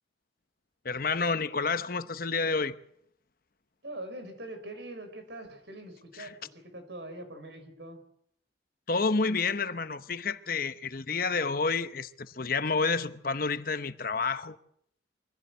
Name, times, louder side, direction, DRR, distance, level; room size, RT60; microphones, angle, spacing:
voice 1, 0.8-2.8 6.2-6.3 8.9-14.6, left 4 dB, 50° left, 0.9 m, -29 dB
voice 2, 3.8-8.0, right 1 dB, 70° right, 4.6 m, -43 dB
24.5 x 15.5 x 8.1 m
head